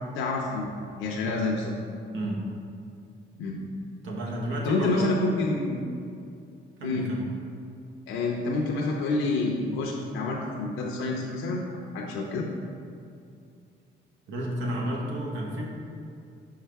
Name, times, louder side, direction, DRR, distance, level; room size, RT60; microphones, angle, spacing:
voice 1, 0.2-0.7 1.0-1.7 3.4-3.6 4.6-5.9 6.8-7.1 8.1-11.7 11.9-12.5, left 3 dB, 85° left, -2 dB, 0.6 m, -28 dB
voice 2, 4.0-5.2 6.8-7.2 14.3-15.7, right 1 dB, 80° right, -2 dB, 1.2 m, -31 dB
5.6 x 5.3 x 3.4 m, 2.5 s
cardioid pair, 90°, 20 cm